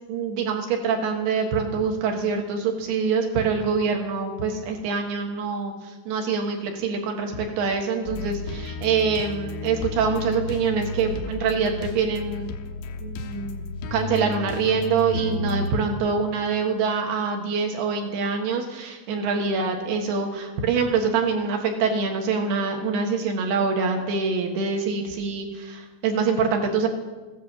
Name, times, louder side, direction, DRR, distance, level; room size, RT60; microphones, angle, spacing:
voice 1, 0.1-12.5 13.0-13.6 13.9-26.9, right 5 dB, 65° right, 3 dB, 3.2 m, -25 dB
sound 1, 8.1-15.7, left 3 dB, 90° left, 3.6 m, -33 dB
16.0 x 10.0 x 7.4 m, 1.3 s
omnidirectional pair, 5.6 m